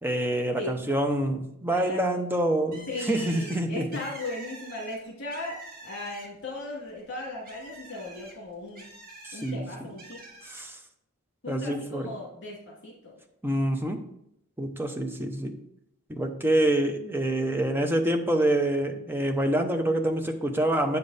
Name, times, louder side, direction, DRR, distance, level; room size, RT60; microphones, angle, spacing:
voice 1, 0.0-4.0 9.2-9.7 10.4-10.8 11.5-12.1 13.4-14.0 14.6-15.6 16.1-21.0, right 1 dB, 10° right, 5 dB, 0.7 m, -26 dB
voice 2, 1.7-2.2 2.9-5.6 5.8-8.9 9.3-10.2 11.4-13.2, left 2 dB, 55° left, -3 dB, 2.3 m, -37 dB
Bird, 2.7-6.5 6.9-9.5 10.0-10.6, right 2 dB, 45° right, 1.7 m, -46 dB
8.2 x 5.3 x 4.1 m, 0.76 s
head